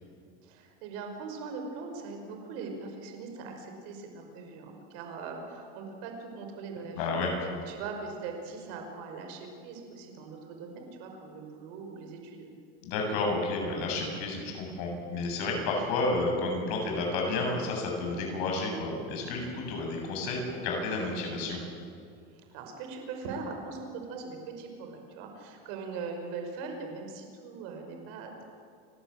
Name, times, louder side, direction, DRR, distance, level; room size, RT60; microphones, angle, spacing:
voice 1, 0.4-12.5 22.3-28.4, right 4 dB, 70° right, 3 dB, 5.5 m, -41 dB
voice 2, 7.0-7.3 12.8-21.6, left 3 dB, 70° left, 1 dB, 7.8 m, -31 dB
29.5 x 12.5 x 9.0 m, 2.4 s
supercardioid pair, 130°, 30 cm